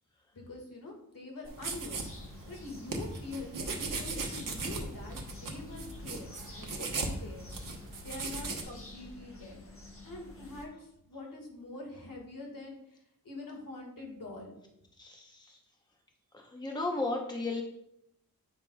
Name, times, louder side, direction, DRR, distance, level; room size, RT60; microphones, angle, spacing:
voice 1, 0.3-7.5 8.0-9.6 10.0-12.8 13.2-14.5, left 2 dB, 70° left, 0 dB, 1.9 m, -45 dB
sound 1, 1.4-8.6, right 3 dB, 65° right, 1.1 m, -38 dB
sound 2, 1.9-10.6, left 2 dB, 40° left, 1.1 m, -49 dB
voice 2, 15.0-15.6 16.3-17.6, left 2 dB, 10° left, 0 dB, 0.8 m, -35 dB
8.7 x 5.7 x 2.3 m, 0.79 s
wide cardioid pair, 125°, 35 cm